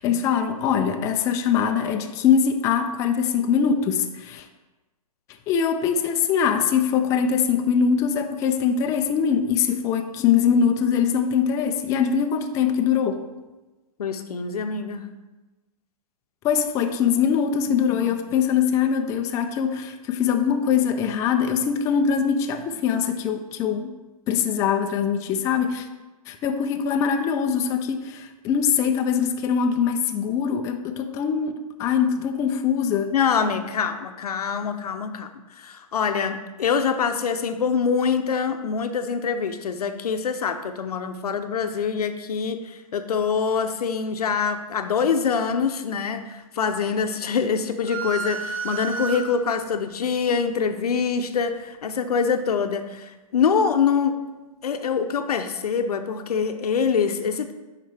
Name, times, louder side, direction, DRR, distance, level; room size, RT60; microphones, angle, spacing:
voice 1, 0.0-4.5 5.5-13.2 16.4-24.0 24.3-25.9 26.3-33.1, left 7 dB, 15° left, 5 dB, 0.3 m, -22 dB
voice 2, 14.0-15.1 17.7-18.2 33.1-54.2 54.6-57.5, left 6 dB, 80° left, 8 dB, 0.7 m, -25 dB
sound 1, 47.9-49.7, right 5 dB, 70° right, 0.8 m, -31 dB
8.2 x 5.0 x 3.4 m, 1.1 s
hypercardioid pair, 135°, 19 cm